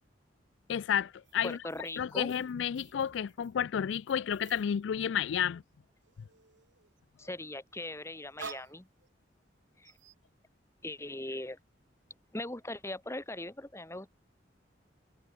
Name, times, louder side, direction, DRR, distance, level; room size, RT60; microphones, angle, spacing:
voice 1, 0.7-1.6 2.0-5.6, left 8 dB, 80° left, 0.4 m, -31 dB
sound 1, 1.2-5.5 5.8-7.0 7.8-9.5 9.8-10.1, right 5 dB, 80° right, 1.5 m, -52 dB
voice 2, 1.4-2.3 7.2-8.9 9.8-9.9 10.8-11.6 12.3-14.1, left 1 dB, 15° left, 1.9 m, -40 dB
head